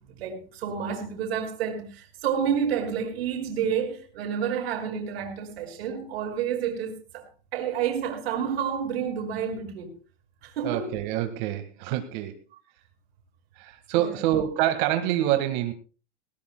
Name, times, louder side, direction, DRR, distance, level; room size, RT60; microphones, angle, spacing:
voice 1, 0.0-9.9 10.4-10.9 13.9-14.2, right 8 dB, 70° right, 5.4 m, -30 dB
voice 2, 10.6-12.4 13.6-15.7, right 12 dB, 45° right, 1.8 m, -26 dB
20.0 x 18.5 x 2.2 m
supercardioid pair, 150°, 32 cm